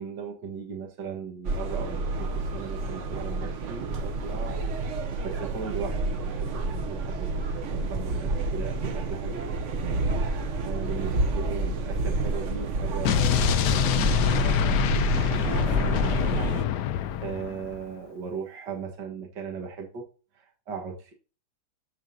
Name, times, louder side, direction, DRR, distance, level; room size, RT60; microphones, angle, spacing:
voice 1, 0.0-4.7 5.2-9.4 10.6-15.0 15.3-16.4 17.2-20.0 20.4-21.1, right 6 dB, 55° right, 1 dB, 2.0 m, -38 dB
sound 1, 1.4-16.6, right 2 dB, 70° right, 0.7 m, -29 dB
Explosion, 13.0-17.8, left 11 dB, 85° left, 0.9 m, -25 dB
14.5 x 4.9 x 2.7 m, 0.36 s
omnidirectional pair, 2.4 m